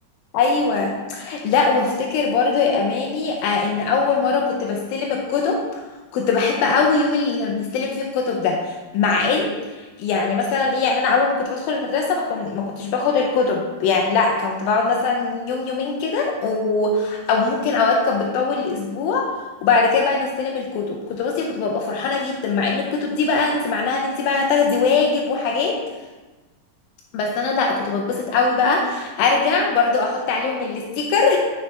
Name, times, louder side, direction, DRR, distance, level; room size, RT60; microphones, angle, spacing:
voice 1, 0.3-5.8 6.1-19.3 19.6-25.8 27.1-31.4, left 4 dB, 85° left, 1 dB, 2.0 m, -21 dB
9.3 x 4.7 x 3.2 m, 1.2 s
omnidirectional pair, 4.9 m